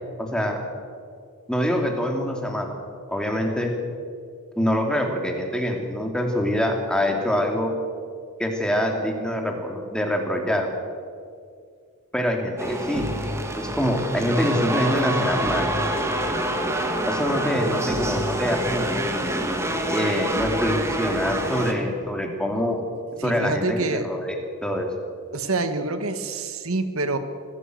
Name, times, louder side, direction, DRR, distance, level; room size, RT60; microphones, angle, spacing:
voice 1, 0.2-0.6 1.5-2.7 3.1-3.7 4.6-7.7 8.4-10.7 12.1-13.1 13.5-15.7 17.1-19.0 19.9-22.8 23.2-24.9, equal, 5° left, 2 dB, 2.7 m, -25 dB
sound 1, 12.6-21.7, right 1 dB, 10° right, 2.0 m, -26 dB
voice 2, 23.2-24.1 25.3-27.2, right 3 dB, 70° right, 9 dB, 1.5 m, -26 dB
24.0 x 15.5 x 7.8 m, 2.2 s
head